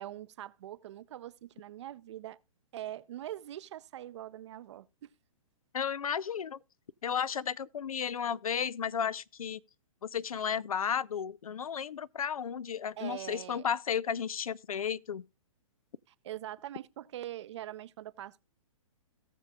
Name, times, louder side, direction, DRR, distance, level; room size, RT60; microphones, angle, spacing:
voice 1, 0.0-2.4 2.7-5.1 13.0-13.8 16.1-18.4, right 13 dB, 55° right, 0.6 m, -43 dB
voice 2, 5.7-6.6 7.0-9.6 10.0-15.2, left 7 dB, 90° left, 0.5 m, -33 dB
17.5 x 6.6 x 2.3 m
hypercardioid pair, 135°, 18 cm